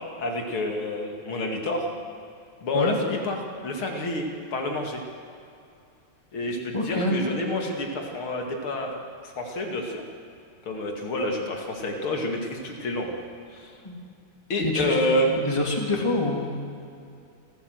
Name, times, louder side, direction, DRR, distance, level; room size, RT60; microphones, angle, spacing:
voice 1, 0.2-1.9 2.6-5.0 6.3-9.0 9.2-10.0 10.7-13.2 13.5-13.8 14.5-15.3, left 1 dB, 90° left, 2 dB, 3.1 m, -28 dB
voice 2, 6.7-7.2 13.8-14.0 14.6-15.2 15.4-16.6, left 2 dB, 15° left, 0 dB, 2.8 m, -26 dB
29.0 x 13.0 x 7.9 m, 2.5 s
omnidirectional pair, 2.3 m